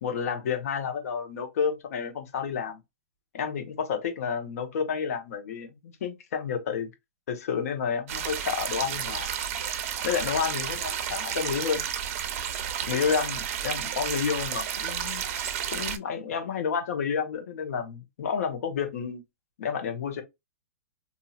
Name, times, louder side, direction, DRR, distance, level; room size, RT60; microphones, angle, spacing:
voice 1, 0.0-2.8 3.3-6.9 7.3-9.3 10.0-11.8 12.9-15.2 15.7-19.2 19.6-20.2, left 6 dB, 65° left, 1.1 m, -30 dB
sound 1, 8.1-16.0, right 9 dB, 55° right, 0.7 m, -32 dB
4.2 x 2.7 x 2.3 m
hypercardioid pair, 135°, 9 cm